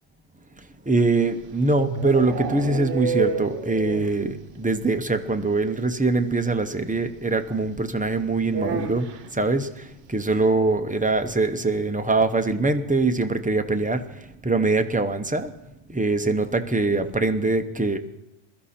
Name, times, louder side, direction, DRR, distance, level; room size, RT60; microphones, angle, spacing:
voice 1, 0.6-15.5 15.9-18.0, right 3 dB, 10° right, 7 dB, 0.6 m, -23 dB
sound 1, 1.2-4.3 4.6-4.7 5.0-5.1 5.3-5.4 6.7-6.8 8.5-9.3, right 6 dB, 85° right, 1.1 m, -29 dB
21.5 x 12.5 x 4.3 m, 0.93 s
omnidirectional pair, 1.2 m